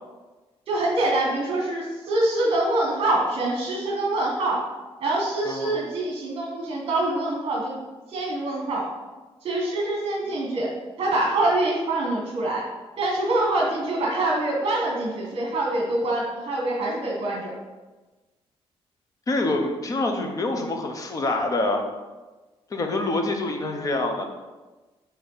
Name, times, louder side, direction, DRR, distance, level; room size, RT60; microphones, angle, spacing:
voice 1, 0.7-4.6 5.0-7.8 8.1-8.9 9.4-10.7 11.0-12.6 13.0-17.5, right 2 dB, 50° right, -2 dB, 1.4 m, -25 dB
voice 2, 19.3-21.8 22.7-24.2, left 2 dB, 35° left, 4 dB, 0.9 m, -26 dB
8.0 x 3.1 x 5.6 m, 1.2 s
cardioid pair, 155°, 11 cm